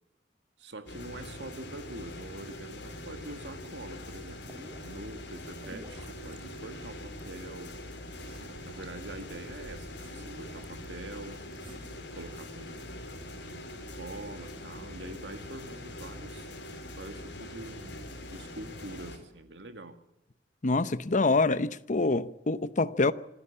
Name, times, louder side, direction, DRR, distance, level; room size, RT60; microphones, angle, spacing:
voice 1, 0.6-4.4 4.8-8.0 8.4-11.4 11.9-12.9 13.5-16.5 17.0-20.0, right 2 dB, 80° right, 2.1 m, -45 dB
sound 1, 0.9-19.2, left 1 dB, 75° left, 4.3 m, -43 dB
sound 2, 4.3-12.9, right 1 dB, 30° right, 2.3 m, -53 dB
voice 2, 20.6-23.1, left 3 dB, 45° left, 0.8 m, -26 dB
26.0 x 11.5 x 8.7 m
head